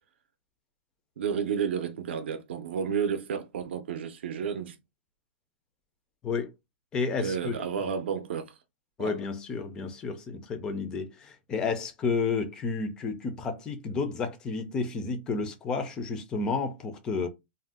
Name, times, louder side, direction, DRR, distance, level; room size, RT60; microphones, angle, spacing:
voice 1, 1.2-4.8 7.2-8.5 9.0-9.1, right 7 dB, 65° right, 0.5 m, -31 dB
voice 2, 6.9-7.5 7.8-7.9 9.0-17.3, left 4 dB, 10° left, 0.3 m, -31 dB
2.5 x 2.1 x 3.5 m
hypercardioid pair, 175°, 7 cm